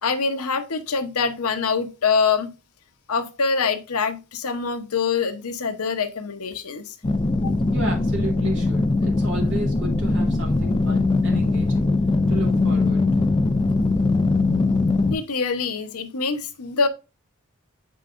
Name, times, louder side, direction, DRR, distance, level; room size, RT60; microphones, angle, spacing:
voice 1, 0.0-2.5 3.1-6.9 7.4-7.5 15.1-16.9, left 5 dB, 85° left, 0.9 m, -24 dB
sound 1, 7.0-15.2, left 3 dB, 20° left, 0.4 m, -21 dB
voice 2, 7.7-11.9 12.3-13.3, right 2 dB, 55° right, 3.1 m, -33 dB
7.6 x 5.4 x 2.5 m
head